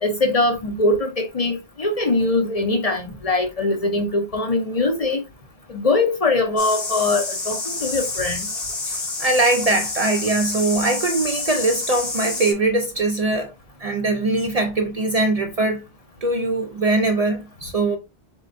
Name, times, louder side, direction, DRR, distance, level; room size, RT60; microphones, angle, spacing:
voice 1, 0.0-5.2 5.7-8.4, left 2 dB, 40° left, 0.7 m, -22 dB
sound 1, 6.6-12.5, left 3 dB, 70° left, 1.6 m, -28 dB
voice 2, 8.9-13.5 13.8-15.9 16.2-18.0, right 2 dB, 45° right, 0.5 m, -21 dB
4.2 x 3.6 x 2.6 m
omnidirectional pair, 1.0 m